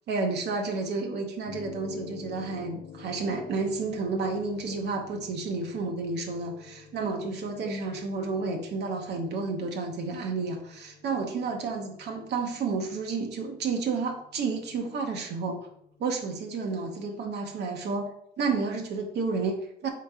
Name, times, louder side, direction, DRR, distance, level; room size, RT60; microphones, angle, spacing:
voice 1, 0.1-15.6 16.0-18.1 18.4-19.9, right 4 dB, 70° right, 3 dB, 0.8 m, -31 dB
sound 1, 1.5-16.0, left 5 dB, 90° left, 0.8 m, -50 dB
3.8 x 2.9 x 4.6 m, 0.71 s
cardioid pair, 110°, 18 cm